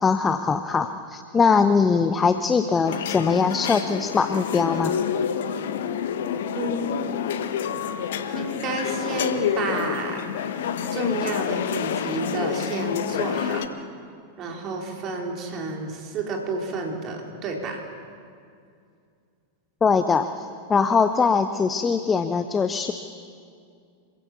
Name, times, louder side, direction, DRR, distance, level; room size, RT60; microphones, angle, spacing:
voice 1, 0.0-4.9 19.8-22.9, left 5 dB, 20° left, 10 dB, 0.8 m, -21 dB
sound 1, 2.8-13.7, left 8 dB, 60° left, 1.3 m, -28 dB
voice 2, 6.6-7.0 8.3-10.2 10.9-13.7 14.4-17.8, right 3 dB, 35° right, 1 dB, 4.2 m, -30 dB
27.0 x 16.5 x 7.2 m, 2.3 s
figure-of-eight pair, 90°, 0 cm